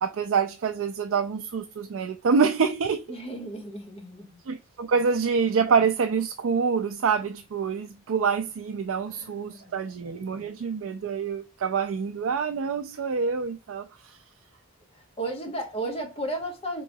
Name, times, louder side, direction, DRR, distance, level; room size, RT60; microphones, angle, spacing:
voice 1, 0.0-3.0 4.5-14.2, right 5 dB, 70° right, 0.4 m, -26 dB
voice 2, 3.1-4.4 9.1-9.7 14.9-16.8, right 1 dB, 30° left, 1.0 m, -34 dB
4.7 x 3.0 x 2.7 m
head